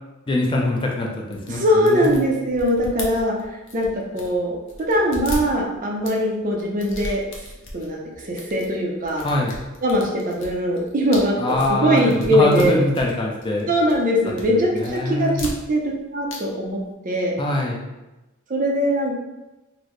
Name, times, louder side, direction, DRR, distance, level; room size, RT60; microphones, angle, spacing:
voice 1, 0.3-2.2 9.2-9.6 11.4-13.7 14.5-15.4 17.4-17.8, left 2 dB, 25° left, -1 dB, 0.4 m, -23 dB
sound 1, 1.3-4.4 4.7-6.2 6.6-7.9 8.2-8.7 9.0-13.6 13.9-14.5 14.8-16.0 16.3-16.4 16.6-16.7, left 1 dB, 60° left, 0.7 m, -36 dB
voice 2, 1.5-3.3 3.7-4.5 4.9-7.2 7.7-9.2 9.8-11.4 11.7-12.8 13.7-15.8 16.1-16.8 17.0-17.3 18.5-19.2, equal, 40° right, -1 dB, 0.6 m, -21 dB
3.9 x 2.0 x 3.0 m, 1.0 s
head